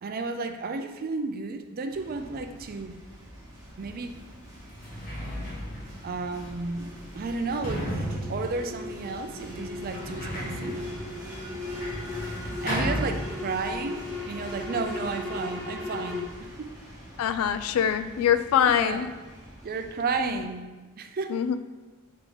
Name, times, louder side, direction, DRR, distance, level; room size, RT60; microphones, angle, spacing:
voice 1, 0.0-3.0 3.8-4.2 6.0-10.8 12.4-16.7 18.7-19.1 19.6-20.7 21.0-21.4, right 4 dB, 40° right, 7 dB, 0.4 m, -33 dB
sound 1, 1.9-20.4, equal, 15° right, 1.6 m, -44 dB
Sliding door, 3.9-4.0 4.6-13.8 14.0-14.8, equal, 40° left, 1.4 m, -35 dB
sound 2, 5.7-16.2, left 2 dB, 10° left, 1.0 m, -38 dB
voice 2, 17.2-19.1 20.2-20.3 21.3-21.6, left 9 dB, 75° left, 13 dB, 0.3 m, -24 dB
5.2 x 4.7 x 3.8 m, 1.2 s
head